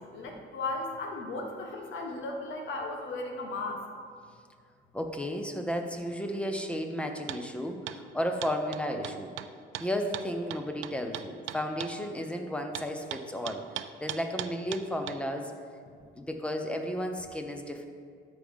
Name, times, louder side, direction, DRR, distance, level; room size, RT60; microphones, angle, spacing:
voice 1, 0.0-3.8, left 2 dB, 75° left, 2 dB, 1.4 m, -36 dB
voice 2, 4.9-9.3 9.8-15.5 16.0-17.8, equal, 5° left, 5 dB, 0.9 m, -33 dB
sound 1, 7.3-7.4 7.9-8.0 8.4-11.9 12.7-15.2, right 13 dB, 80° right, 0.4 m, -38 dB
13.0 x 5.1 x 3.6 m, 2.2 s
cardioid pair, 90°, 20 cm